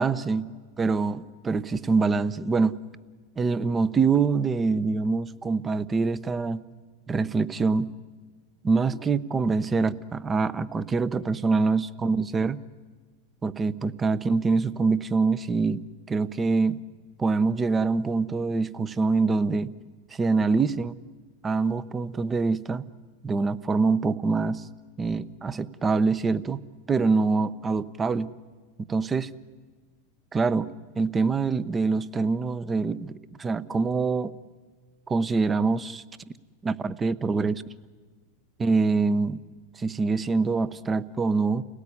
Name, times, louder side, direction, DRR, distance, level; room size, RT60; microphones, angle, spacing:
voice 1, 0.0-0.4 0.8-2.7 3.4-6.6 7.1-7.9 8.6-12.6 13.4-15.8 16.1-16.8 17.2-19.7 20.1-21.0 21.4-22.8 23.2-24.6 25.0-26.6 26.9-28.3 28.9-29.3 30.3-30.7 31.0-34.3 35.1-36.0 36.6-37.6 38.6-39.4 39.8-41.6, right 4 dB, 20° right, 16 dB, 0.9 m, -25 dB
29.5 x 18.0 x 9.9 m, 1.5 s
hypercardioid pair, 110°, 0 cm